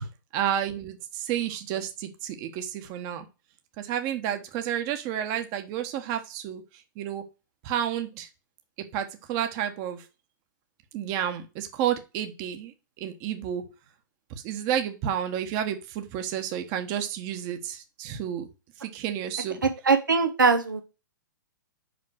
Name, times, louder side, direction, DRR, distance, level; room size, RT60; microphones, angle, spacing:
voice 1, 0.3-3.3 3.8-6.6 7.0-7.2 7.6-8.3 8.9-10.0 10.9-12.7 13.0-13.6 14.3-18.5 18.8-19.6, right 10 dB, 35° right, 6 dB, 1.3 m, -30 dB
voice 2, 19.6-20.8, right 4 dB, 85° right, 7 dB, 1.2 m, -22 dB
5.3 x 5.2 x 6.2 m, 0.29 s
hypercardioid pair, 120°, 10 cm